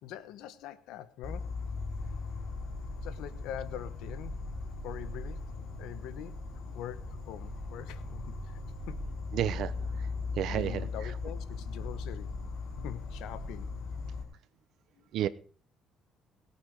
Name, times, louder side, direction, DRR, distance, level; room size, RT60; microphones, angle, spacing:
voice 1, 0.0-1.5 3.0-4.4 4.8-5.4 5.8-6.4 6.7-8.6 8.9-9.1 10.5-12.4 12.8-13.7 15.0-15.1, left 11 dB, 85° left, 1.1 m, -43 dB
Insect, 1.2-14.2, left 3 dB, 55° left, 5.2 m, -38 dB
voice 2, 9.3-9.8 10.3-10.8 15.1-15.3, right 11 dB, 70° right, 0.8 m, -30 dB
18.5 x 8.5 x 4.8 m
cardioid pair, 135°, 0 cm